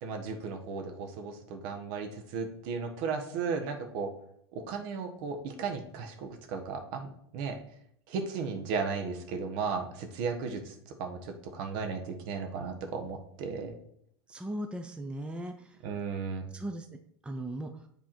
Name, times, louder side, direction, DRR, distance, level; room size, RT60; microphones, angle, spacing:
voice 1, 0.0-4.1 4.5-7.6 8.1-13.7 15.8-16.5, right 5 dB, 60° right, 4 dB, 1.3 m, -35 dB
voice 2, 14.3-15.8 16.5-16.9 17.2-17.8, right 1 dB, 10° right, 5 dB, 0.6 m, -38 dB
7.6 x 3.5 x 4.5 m, 0.68 s
hypercardioid pair, 95°, 13 cm